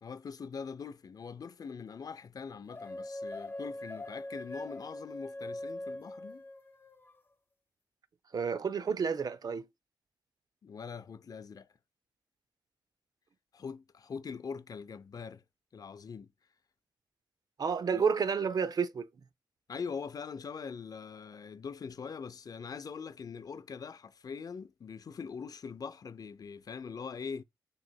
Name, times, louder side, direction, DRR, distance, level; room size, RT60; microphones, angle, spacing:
voice 1, 0.0-6.4 10.6-11.7 13.5-15.4 15.7-16.3 17.9-18.0 19.7-27.4, left 6 dB, 50° left, 0.5 m, -42 dB
sound 1, 2.7-7.2, left 1 dB, 25° left, 1.2 m, -42 dB
voice 2, 8.3-9.6 17.6-19.1, right 6 dB, 55° right, 0.5 m, -30 dB
6.0 x 3.1 x 2.3 m
cardioid pair, 60°, 8 cm